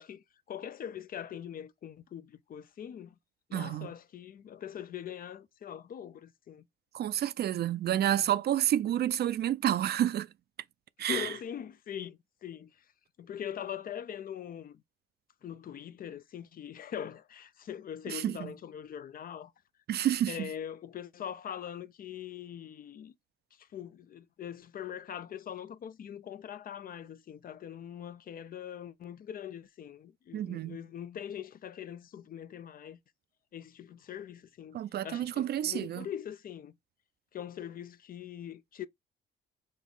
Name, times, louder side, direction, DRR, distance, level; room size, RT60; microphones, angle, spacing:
voice 1, 0.0-3.2 3.5-6.7 11.0-12.8 13.2-14.8 15.4-19.5 20.3-23.1 23.6-33.0 33.5-36.8 37.3-38.9, left 9 dB, 45° left, 0.4 m, -42 dB
voice 2, 3.5-3.9 6.9-10.3 11.0-11.3 18.1-18.5 19.9-20.5 30.3-30.8 34.7-36.1, right 11 dB, 55° right, 0.4 m, -29 dB
5.3 x 2.4 x 3.7 m
cardioid pair, 90°, 20 cm